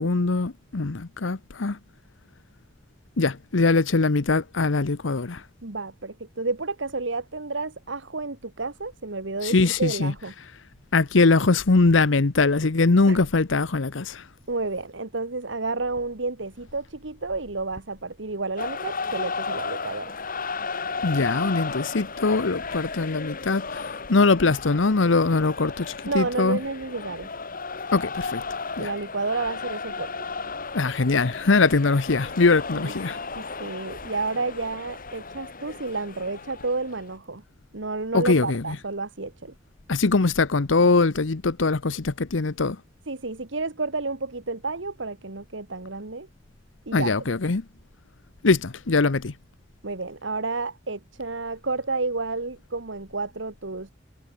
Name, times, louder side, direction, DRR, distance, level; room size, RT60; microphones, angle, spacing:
voice 1, 0.0-1.8 3.2-5.4 9.4-10.1 10.9-14.3 21.0-26.6 27.9-28.4 28.8-28.9 30.7-33.2 38.1-38.8 39.9-42.8 46.9-47.6 48.4-49.3, left 3 dB, 80° left, 0.9 m, -22 dB
voice 2, 5.6-10.3 13.1-13.2 14.5-20.1 26.1-27.3 28.8-30.1 32.7-32.9 33.4-37.4 37.7-39.5 43.1-46.3 46.9-47.1 49.8-53.9, right 3 dB, 70° right, 1.6 m, -30 dB
sound 1, 18.6-37.1, left 4 dB, 50° left, 3.4 m, -34 dB
head